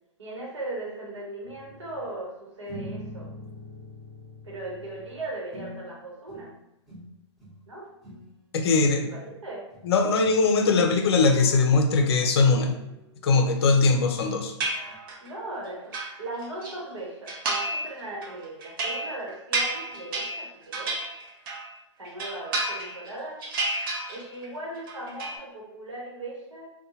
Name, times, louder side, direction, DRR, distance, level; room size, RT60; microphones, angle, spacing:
voice 1, 0.2-3.3 4.4-6.5 7.7-7.9 9.0-9.7 15.2-21.0 22.0-23.5 24.1-26.7, right 2 dB, 80° right, -3 dB, 1.0 m, -38 dB
sound 1, 1.4-2.1 2.7-6.0 6.3-6.6 6.9-7.6 7.9-8.4 9.3-9.4 9.7-9.9 10.2-10.4 11.2-11.9 12.5-14.3 14.9-15.0, equal, ahead, 0.8 m, -44 dB
voice 2, 8.5-9.1 9.8-12.8 13.2-14.5, left 4 dB, 60° left, 4 dB, 0.5 m, -21 dB
sound 2, 14.6-15.3 15.7-16.7 17.3-17.9 18.2-21.7 22.0-23.1 23.4-24.5 24.8-25.4, right 2 dB, 50° right, 0.6 m, -31 dB
2.6 x 2.2 x 2.7 m, 0.91 s
hypercardioid pair, 120°, 15 cm